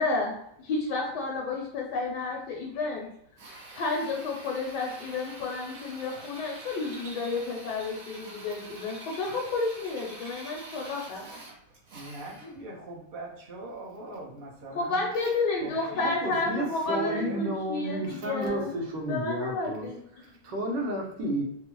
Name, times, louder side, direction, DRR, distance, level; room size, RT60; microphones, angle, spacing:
voice 1, 0.0-3.1 3.7-11.3 14.8-18.7 19.1-20.0, left 3 dB, 75° left, -1 dB, 1.2 m, -31 dB
Drill, 3.4-12.6, right 2 dB, 65° right, 1.2 m, -46 dB
voice 2, 11.9-15.1 15.6-17.5, right 1 dB, 50° right, -4 dB, 0.7 m, -42 dB
voice 3, 16.0-19.9 20.2-21.4, right 1 dB, 90° right, -1 dB, 1.5 m, -32 dB
3.6 x 2.0 x 3.0 m, 0.73 s
omnidirectional pair, 1.9 m